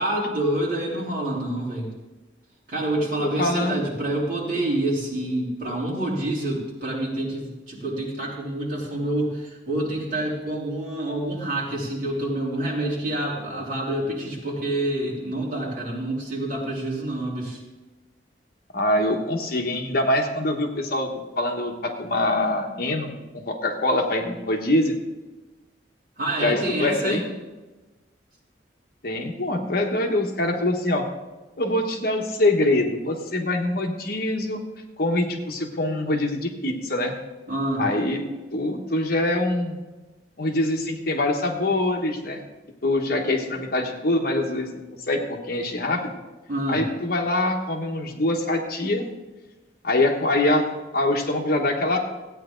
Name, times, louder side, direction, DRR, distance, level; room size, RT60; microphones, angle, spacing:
voice 1, 0.0-1.9 2.7-17.6 26.2-27.2 37.5-37.8 46.5-46.8, right 1 dB, 50° right, -5 dB, 3.4 m, -27 dB
voice 2, 3.2-3.8 18.7-24.9 26.4-27.2 29.0-31.1 31.6-34.6 35.0-37.2 37.8-38.2 38.5-39.8 40.4-42.4 42.8-46.1 46.7-49.0 49.8-50.7 50.9-52.0, left 1 dB, 55° left, 3 dB, 1.3 m, -24 dB
15.0 x 9.1 x 3.8 m, 1.2 s
head